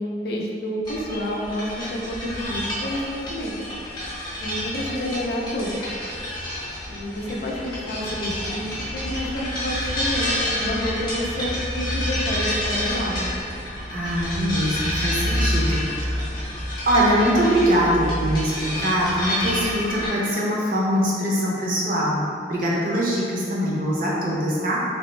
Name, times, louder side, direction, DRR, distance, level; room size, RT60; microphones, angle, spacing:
voice 1, 0.0-3.5 4.4-5.9 6.9-8.7 8.9-13.3, equal, 60° left, -1 dB, 0.5 m, -29 dB
sound 1, 0.8-20.1, left 1 dB, 25° left, 0.8 m, -28 dB
voice 2, 13.9-16.2 16.9-24.8, equal, 50° right, -4 dB, 0.7 m, -23 dB
3.3 x 3.1 x 3.1 m, 2.4 s
head